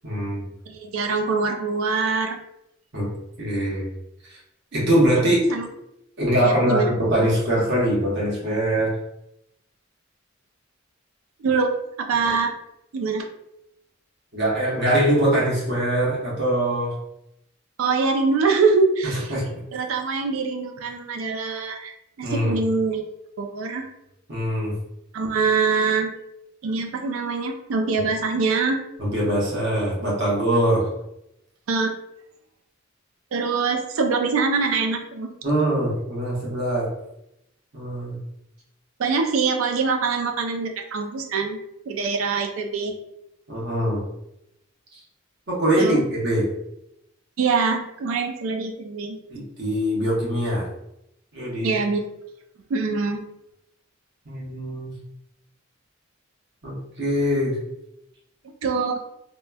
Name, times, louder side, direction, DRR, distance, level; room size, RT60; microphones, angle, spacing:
voice 1, 0.0-0.5 2.9-3.1 3.4-3.9 4.2-4.4 4.7-5.5 6.2-9.0 14.3-17.0 19.0-19.4 22.2-22.5 24.3-24.7 29.0-30.9 35.4-36.9 37.7-38.2 43.5-44.0 44.9-45.0 45.5-46.5 49.3-50.7 51.3-51.7 54.2-54.9 56.6-57.6, right 1 dB, 55° right, -5 dB, 0.9 m, -23 dB
voice 2, 0.7-2.4 5.5-5.7 6.4-6.9 11.4-11.7 12.0-12.5 12.9-13.3 17.8-19.3 19.7-21.9 22.2-23.0 23.4-23.9 25.1-26.1 26.6-28.8 31.7-31.9 33.3-35.3 39.0-41.6 41.8-42.9 45.8-46.0 47.4-49.2 51.6-52.0 52.7-53.2 58.6-58.9, right 4 dB, 80° right, 4 dB, 0.4 m, -24 dB
2.9 x 2.1 x 2.2 m, 0.82 s
head